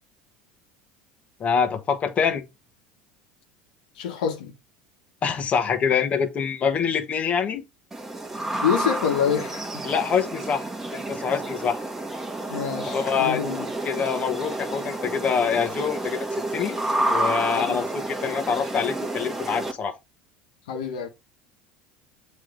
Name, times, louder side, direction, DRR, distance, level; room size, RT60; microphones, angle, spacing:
voice 1, 1.4-2.4 5.2-7.6 9.8-10.7 10.9-11.8 12.5-12.6 12.9-13.4 13.8-16.8 17.1-19.9, left 6 dB, 35° left, 1.4 m, -25 dB
voice 2, 4.0-4.5 8.6-9.8 12.5-13.7 17.5-17.9 20.7-21.1, left 8 dB, 90° left, 1.4 m, -27 dB
sound 1, 7.9-19.7, right 2 dB, 10° right, 1.3 m, -30 dB
7.3 x 3.3 x 5.1 m
supercardioid pair, 105°, 4 cm